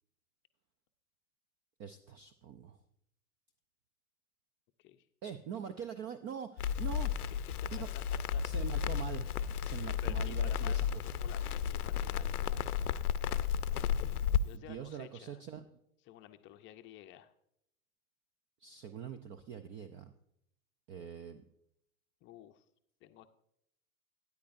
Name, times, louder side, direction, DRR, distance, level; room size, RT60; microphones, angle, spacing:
voice 1, 1.8-2.8 5.2-7.3 7.7-7.9 8.4-11.1 14.5-15.6 18.6-20.1 20.9-21.4, right 8 dB, 30° right, 11 dB, 0.5 m, -44 dB
Crackle, 6.6-14.4, left 8 dB, 85° left, 0.6 m, -33 dB
voice 2, 7.3-7.7 7.9-8.4 9.8-12.8 14.4-15.4 16.1-17.3 22.2-22.6 23.0-23.3, left 12 dB, 25° left, 8 dB, 0.6 m, -53 dB
13.0 x 9.8 x 2.6 m, 0.74 s
hypercardioid pair, 110°, 44 cm